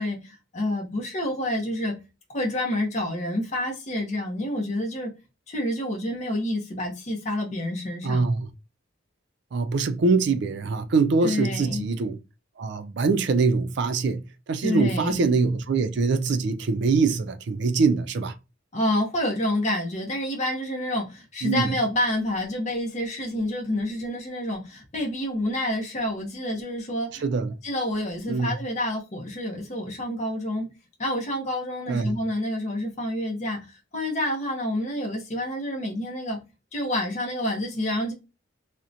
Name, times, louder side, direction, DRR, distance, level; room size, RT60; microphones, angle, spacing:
voice 1, 0.0-1.9 2.3-5.1 5.5-8.3 11.2-11.8 14.6-15.2 18.7-27.2 27.6-30.7 31.0-36.4 36.7-38.1, left 1 dB, 35° left, 0.7 m, -28 dB
voice 2, 8.0-8.5 9.5-12.2 12.6-14.2 14.5-18.3 21.4-21.7 27.2-27.5 28.3-28.5 31.9-32.2, right 4 dB, 60° right, 0.4 m, -23 dB
2.7 x 2.1 x 2.4 m
head